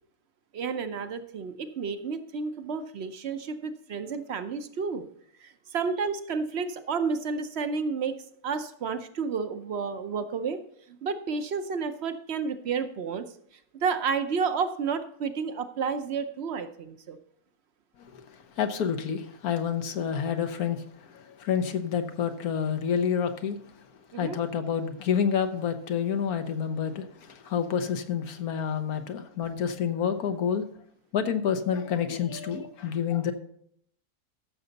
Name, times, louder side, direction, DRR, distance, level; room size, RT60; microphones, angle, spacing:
voice 1, 0.5-5.1 5.4-8.2 8.4-10.6 11.0-13.3 13.8-17.2 24.1-24.4, right 5 dB, 55° right, 0.8 m, -31 dB
voice 2, 18.1-23.6 24.2-30.7 31.1-33.3, left 7 dB, 75° left, 1.4 m, -28 dB
14.0 x 6.7 x 4.0 m
omnidirectional pair, 1.6 m